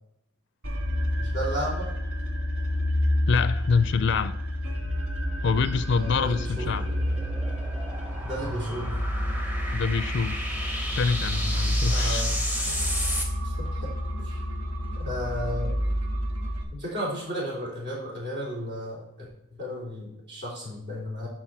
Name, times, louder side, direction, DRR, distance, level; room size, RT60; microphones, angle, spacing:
sound 1, 0.6-16.6, equal, 75° right, 1.6 m, -29 dB
voice 1, 1.2-1.8 5.9-6.9 8.2-8.9 11.9-12.4 13.4-13.9 14.2-14.4 15.0-15.8 16.7-19.3 19.6-21.3, equal, 50° right, -4 dB, 3.3 m, -34 dB
voice 2, 3.3-4.3 5.4-6.8 9.7-10.4 11.0-12.3, left 5 dB, 55° left, 13 dB, 0.4 m, -25 dB
sound 2, 6.3-13.3, equal, 10° right, 1.0 m, -34 dB
10.5 x 4.5 x 4.3 m, 0.88 s
head